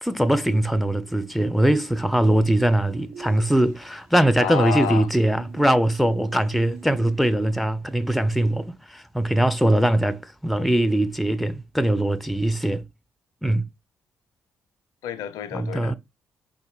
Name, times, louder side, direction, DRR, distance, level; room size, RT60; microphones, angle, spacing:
voice 1, 0.0-12.8 13.4-13.6 15.5-16.0, right 1 dB, ahead, 0.4 m, -21 dB
sound 1, 2.9-4.1 5.4-7.6, right 6 dB, 40° right, 1.1 m, -44 dB
voice 2, 4.4-5.1 15.0-16.0, left 8 dB, 65° left, 0.5 m, -29 dB
4.1 x 3.9 x 2.3 m
figure-of-eight pair, 40°, 7 cm